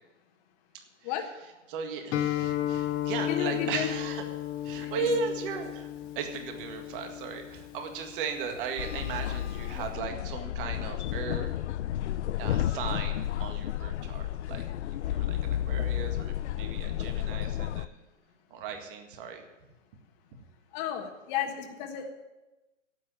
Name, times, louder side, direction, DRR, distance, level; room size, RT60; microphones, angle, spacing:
voice 1, 0.7-1.3 1.7-4.2 4.6-11.6 12.4-14.6 15.0-18.0 18.5-19.5 20.3-20.4, right 5 dB, 45° right, 5 dB, 1.9 m, -37 dB
Guitar, 2.1-9.9, left 12 dB, 15° left, 0.4 m, -34 dB
sound 1, 2.7-2.9 3.5-3.8 4.7-4.8 5.6-5.8 6.3-6.7 7.5-7.7 8.5-8.6 9.0-9.1 9.5-9.6 10.2-10.3, right 4 dB, 60° right, 5.2 m, -56 dB
voice 2, 3.3-3.9 4.8-5.1 20.7-22.1, left 10 dB, 35° left, 2 dB, 1.5 m, -33 dB
sound 2, 8.8-17.9, left 12 dB, 65° left, 0.6 m, -32 dB
11.5 x 8.4 x 7.8 m, 1.0 s
hypercardioid pair, 125°, 38 cm